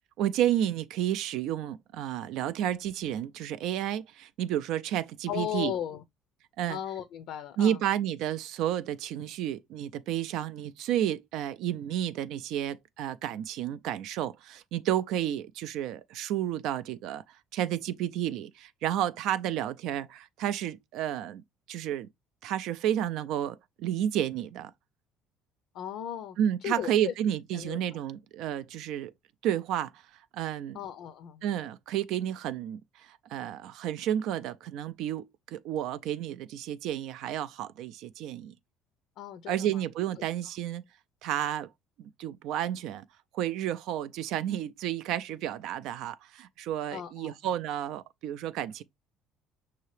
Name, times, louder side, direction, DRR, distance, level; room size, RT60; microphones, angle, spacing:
voice 1, 0.2-5.7 6.6-6.8 7.6-22.1 22.4-24.7 26.4-29.1 29.4-30.0 30.3-30.8 31.4-38.5 39.5-40.8 41.2-41.7 42.0-43.0 43.3-48.8, right 11 dB, 70° right, 0.3 m, -31 dB
voice 2, 5.3-6.0 6.7-7.8 25.7-26.4 26.6-27.1 27.5-28.0 30.7-31.4 39.2-39.8 46.9-47.5, left 10 dB, 65° left, 0.5 m, -36 dB
5.6 x 2.8 x 3.1 m
cardioid pair, 125°, 0 cm